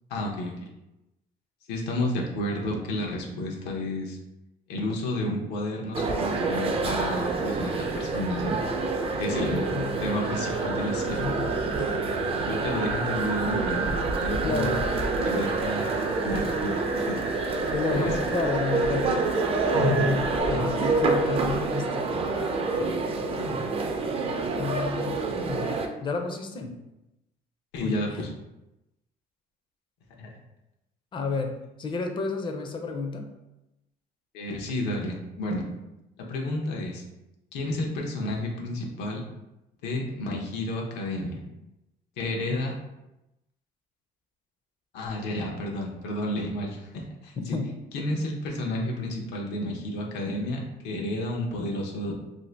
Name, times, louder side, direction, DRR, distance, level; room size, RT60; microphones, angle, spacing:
voice 1, 0.1-0.7 1.7-4.2 4.7-8.6 9.2-9.7 10.0-11.3 12.5-14.8 15.2-15.9 16.2-16.8 17.1-17.2 17.9-18.1 19.7-20.1 20.5-20.7 23.4-23.6 27.7-28.3 30.2-30.3 34.3-35.6 36.2-37.0 37.5-39.2 39.8-41.4 42.2-42.7 44.9-47.6 47.9-52.1, left 1 dB, 90° left, 0 dB, 0.7 m, -31 dB
sound 1, 5.9-25.9, right 3 dB, 35° right, 0.4 m, -28 dB
sound 2, 6.3-20.4, right 4 dB, 85° right, 0.7 m, -35 dB
voice 2, 9.3-10.2 11.1-11.5 11.8-12.0 14.4-14.8 17.7-19.1 20.0-22.1 22.4-22.5 24.5-25.7 26.0-26.8 27.8-28.3 31.1-31.5 31.8-33.3 42.5-42.6 47.4-47.7 48.1-48.2, left 4 dB, 30° left, 4 dB, 0.4 m, -31 dB
2.6 x 2.4 x 3.2 m, 0.94 s
cardioid pair, 110°, 17 cm